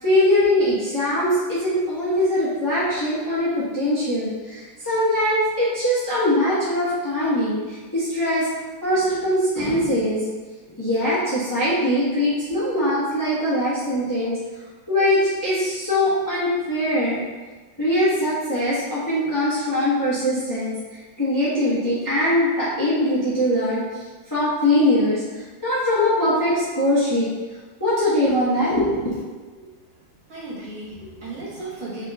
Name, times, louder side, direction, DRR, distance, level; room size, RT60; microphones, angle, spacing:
voice 1, 0.0-8.5 8.8-10.2 10.8-14.4 14.9-17.2 17.8-20.7 21.2-23.8 24.3-25.2 25.6-27.3 27.8-29.1, left 1 dB, 15° left, -10 dB, 0.8 m, -21 dB
voice 2, 30.3-32.1, right 2 dB, 65° right, -8 dB, 1.8 m, -35 dB
3.6 x 3.0 x 3.3 m, 1.3 s
omnidirectional pair, 1.7 m